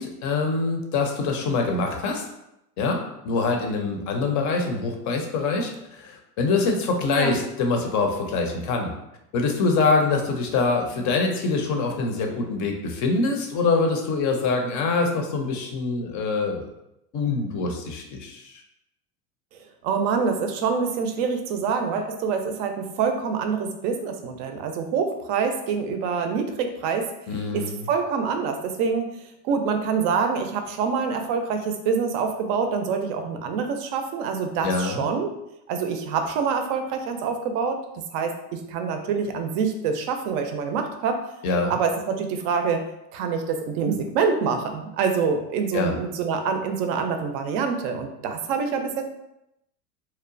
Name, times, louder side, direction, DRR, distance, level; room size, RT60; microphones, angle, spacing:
voice 1, 0.0-2.2 2.8-8.9 9.3-16.7 17.1-18.6 27.3-27.8 34.6-35.1 41.4-41.7 45.7-46.0, left 3 dB, 40° left, 3 dB, 0.5 m, -24 dB
voice 2, 19.8-27.0 27.5-29.1 29.4-35.3 35.7-41.2 41.7-42.8 43.1-49.1, right 5 dB, 50° right, 6 dB, 0.5 m, -26 dB
2.9 x 2.1 x 2.5 m, 0.84 s
hypercardioid pair, 95°, 49 cm